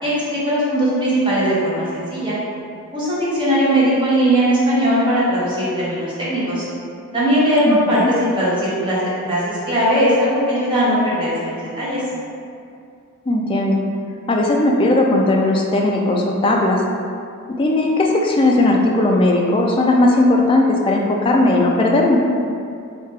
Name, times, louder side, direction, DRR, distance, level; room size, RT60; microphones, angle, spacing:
voice 1, 0.0-2.3 2.9-6.7 7.1-8.0 8.3-9.0 9.2-12.0, equal, 20° right, -10 dB, 1.0 m, -19 dB
voice 2, 7.7-8.1 13.3-13.8 14.3-16.8 17.5-22.2, left 2 dB, 25° left, 0 dB, 0.3 m, -17 dB
3.4 x 2.7 x 3.2 m, 2.4 s
head